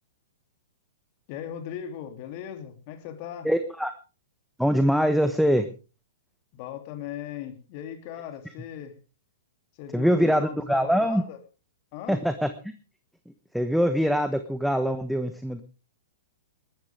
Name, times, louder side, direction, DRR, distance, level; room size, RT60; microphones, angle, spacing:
voice 1, 1.3-3.5 6.5-8.9 9.8-11.4 11.9-12.2, left 10 dB, 45° left, 7 dB, 3.0 m, -38 dB
voice 2, 3.4-3.9 4.6-5.7 9.9-11.2 12.1-12.5 13.5-15.6, equal, ahead, 9 dB, 1.2 m, -23 dB
20.5 x 13.0 x 3.6 m, 0.35 s
hypercardioid pair, 115°, 0 cm